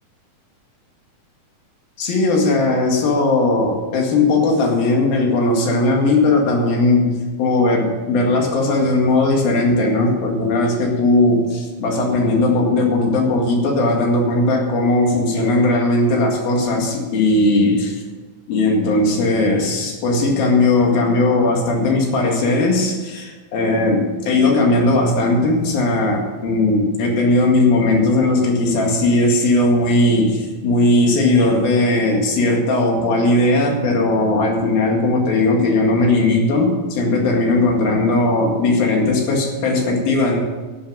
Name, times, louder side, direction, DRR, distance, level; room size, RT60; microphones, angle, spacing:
voice 1, 2.0-7.1 7.4-18.0 18.5-40.4, left 2 dB, 85° left, 1 dB, 3.8 m, -17 dB
12.0 x 7.7 x 7.4 m, 1.3 s
omnidirectional pair, 4.1 m